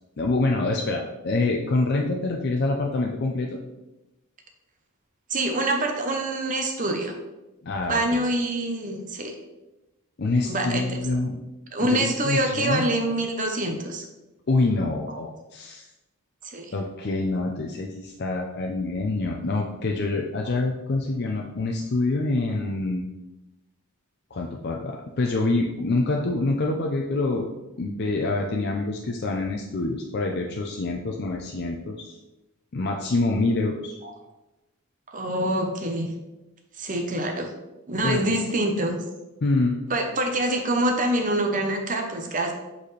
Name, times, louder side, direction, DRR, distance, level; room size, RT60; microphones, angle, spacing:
voice 1, 0.2-3.6 7.6-8.2 10.2-11.4 11.9-12.9 14.5-15.8 16.7-23.0 24.3-27.5 27.8-32.2 32.7-33.9 38.0-38.4 39.4-39.8, left 2 dB, 50° left, 0 dB, 0.5 m, -26 dB
voice 2, 5.3-7.2 7.9-9.3 10.4-11.0 11.7-14.0 15.1-15.2 16.4-16.7 34.0-34.1 35.1-36.1 36.8-37.5 37.9-38.9 39.9-42.5, right 1 dB, 35° right, 3 dB, 0.7 m, -25 dB
7.8 x 4.1 x 3.2 m, 1.0 s
head